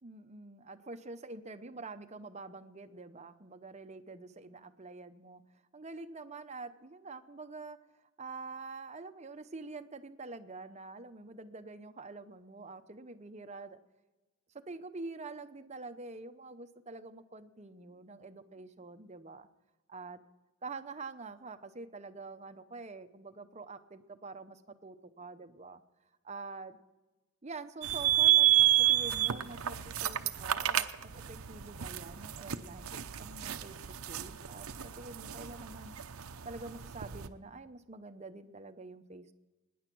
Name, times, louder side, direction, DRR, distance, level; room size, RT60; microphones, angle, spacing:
voice 1, 0.0-5.4 5.7-7.8 8.2-13.8 14.7-19.5 19.9-20.2 20.6-25.8 26.2-26.8 27.4-33.8 34.1-35.9 36.4-39.3, right 3 dB, 30° right, 10 dB, 0.8 m, -46 dB
sound 1, 27.8-37.3, right 12 dB, 85° right, 0.8 m, -30 dB
23.0 x 10.5 x 6.1 m, 1.1 s
head